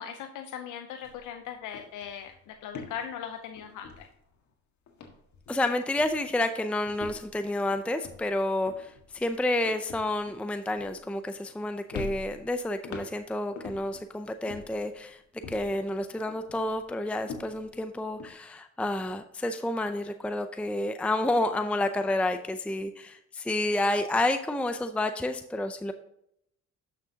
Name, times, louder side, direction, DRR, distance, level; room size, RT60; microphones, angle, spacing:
voice 1, 0.0-4.1, left 8 dB, 85° left, 6 dB, 0.7 m, -39 dB
sound 1, 1.0-1.2 1.5-4.5 4.9-5.7 6.0-6.4 6.9-11.6 11.9-14.1 14.5-15.9 16.3-18.3, left 4 dB, 70° left, 1.7 m, -44 dB
voice 2, 5.5-15.2 15.5-25.9, left 1 dB, 5° left, 8 dB, 0.5 m, -30 dB
11.5 x 6.2 x 2.8 m, 0.76 s
cardioid pair, 90°, 30 cm